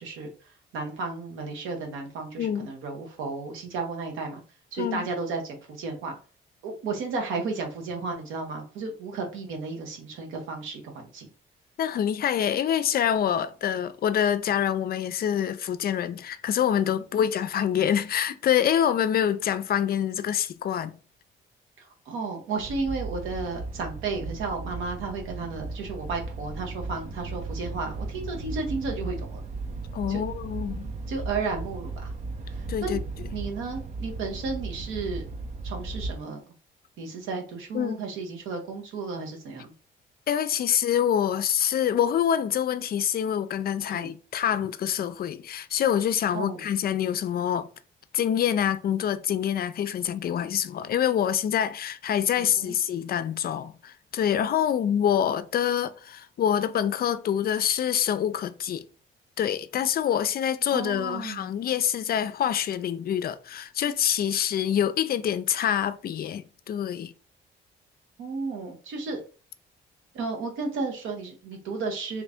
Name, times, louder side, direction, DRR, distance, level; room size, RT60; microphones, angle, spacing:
voice 1, 0.0-4.4 4.7-6.2 6.6-11.3 17.1-17.3 21.8-29.4 30.1-30.2 31.1-32.1 32.5-33.0 33.3-35.3 35.6-36.4 37.0-39.7 43.8-44.1 46.3-46.6 52.3-52.8 60.7-61.5 68.2-69.2 70.1-72.2, right 4 dB, 90° right, 0.9 m, -33 dB
voice 2, 2.4-2.7 4.8-5.1 11.8-20.9 29.9-30.9 32.7-33.0 37.7-38.0 40.3-47.7 48.1-58.8 59.4-67.1, left 9 dB, 50° left, 0.4 m, -26 dB
sound 1, 22.6-36.1, right 3 dB, 35° right, 0.6 m, -36 dB
3.1 x 2.5 x 3.4 m
cardioid pair, 90°, 20 cm